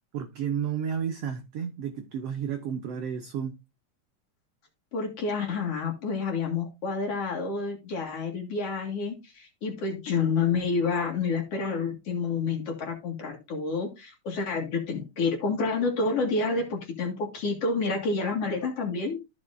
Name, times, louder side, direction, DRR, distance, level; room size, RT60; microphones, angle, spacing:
voice 1, 0.1-3.6, right 8 dB, 80° right, 1.4 m, -32 dB
voice 2, 4.9-19.2, left 4 dB, 50° left, 2.5 m, -29 dB
14.0 x 5.4 x 2.5 m
omnidirectional pair, 3.8 m